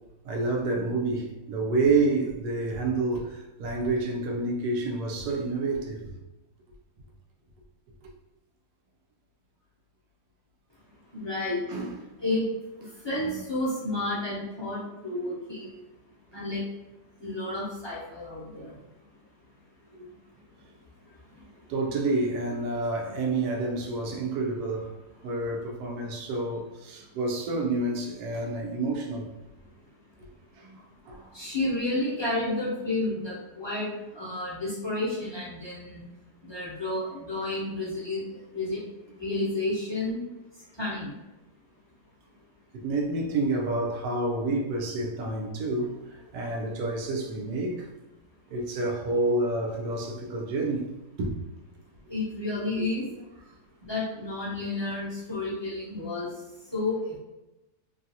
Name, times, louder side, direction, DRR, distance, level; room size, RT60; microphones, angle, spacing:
voice 1, 0.2-6.1 11.7-12.0 13.2-13.3 20.0-20.1 21.7-24.9 25.2-29.3 30.6-31.3 42.7-47.9 48.5-50.9 51.2-51.3 53.2-53.3, right 2 dB, 80° right, 1.1 m, -29 dB
voice 2, 11.1-11.6 12.2-12.5 13.0-15.8 16.3-16.6 17.2-18.7 31.3-33.9 34.1-36.0 36.5-38.2 38.5-38.8 39.2-40.2 40.8-41.1 52.1-53.0 53.9-56.3 56.7-56.9, left 2 dB, 25° left, 0.6 m, -31 dB
3.0 x 2.4 x 2.7 m
omnidirectional pair, 1.7 m